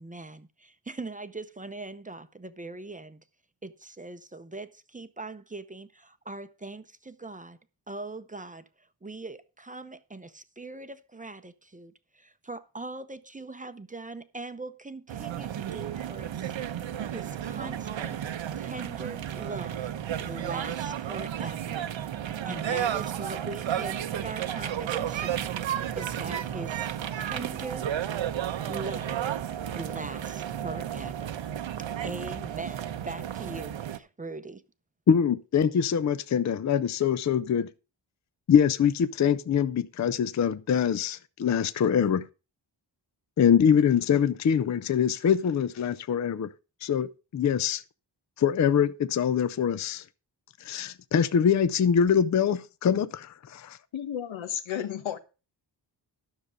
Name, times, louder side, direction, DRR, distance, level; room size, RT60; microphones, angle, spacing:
voice 1, 0.0-3.2 3.6-7.6 7.9-18.2 18.5-19.9 20.2-21.9 22.5-26.9 27.2-27.9 28.7-29.4 29.7-31.4 31.8-34.6, right 3 dB, 15° right, 0.6 m, -41 dB
sound 1, 15.1-34.0, right 10 dB, 80° right, 0.9 m, -33 dB
voice 2, 35.1-37.7 38.5-42.3 43.4-46.5 46.8-47.8 48.4-50.0 50.6-53.8, left 8 dB, 40° left, 0.5 m, -24 dB
voice 3, 53.9-55.2, left 9 dB, 90° left, 1.3 m, -32 dB
12.5 x 6.7 x 5.1 m
wide cardioid pair, 160°, 45 cm